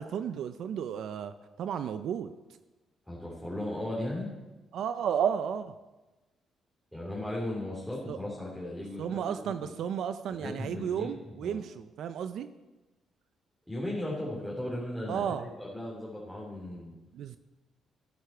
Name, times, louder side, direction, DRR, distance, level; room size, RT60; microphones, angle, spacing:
voice 1, 0.0-2.3 4.7-5.7 8.1-8.2 9.0-12.5 15.1-15.5 17.1-17.4, right 8 dB, 75° right, 11 dB, 0.5 m, -33 dB
voice 2, 3.1-4.3 6.9-9.7 10.4-11.1 11.4-11.6 13.7-16.9, left 1 dB, 5° left, -5 dB, 3.3 m, -36 dB
13.5 x 10.0 x 4.5 m, 1.1 s
cardioid pair, 90°, 0 cm